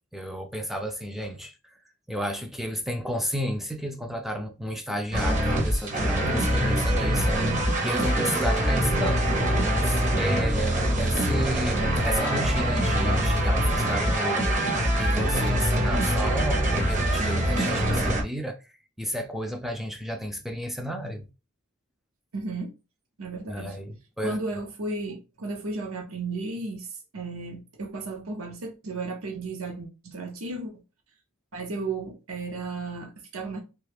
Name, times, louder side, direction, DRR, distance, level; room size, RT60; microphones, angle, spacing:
voice 1, 0.1-1.7 2.1-9.3 9.8-14.7 15.0-18.7 19.0-21.2 23.5-24.4, equal, ahead, 0.3 m, -32 dB
sound 1, 5.1-18.2, right 1 dB, 35° right, 0.8 m, -24 dB
voice 2, 22.3-22.7 23.2-23.8 24.2-30.7 31.5-33.6, right 3 dB, 75° right, 0.7 m, -34 dB
3.1 x 2.3 x 3.3 m
head